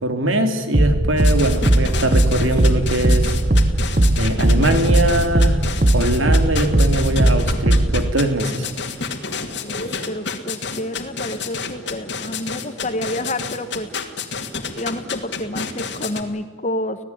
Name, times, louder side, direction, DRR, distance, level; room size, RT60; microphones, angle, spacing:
voice 1, 0.0-3.4 4.2-5.6 5.9-8.7, right 1 dB, 80° right, 7 dB, 3.1 m, -21 dB
sound 1, 0.7-8.1, right 1 dB, 40° right, 0.9 m, -18 dB
sound 2, 1.2-16.2, left 5 dB, 55° left, 2.5 m, -29 dB
voice 2, 9.6-13.9 14.8-17.0, left 1 dB, 35° left, 9 dB, 1.6 m, -29 dB
26.0 x 17.5 x 9.7 m, 1.5 s
head